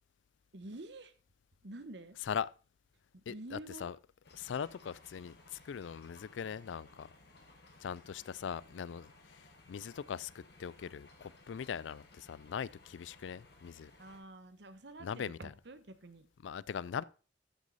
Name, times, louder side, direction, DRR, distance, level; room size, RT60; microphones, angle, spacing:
voice 1, 0.5-1.1 1.6-2.2 3.1-3.9 14.0-16.3, right 2 dB, 70° right, 1.0 m, -48 dB
voice 2, 3.3-4.0 4.3-7.1 7.8-9.1 9.7-13.9 15.0-15.5 16.4-17.0, left 7 dB, 85° left, 0.4 m, -40 dB
sound 1, 4.2-14.2, left 2 dB, 60° left, 2.0 m, -60 dB
13.0 x 6.2 x 4.0 m
head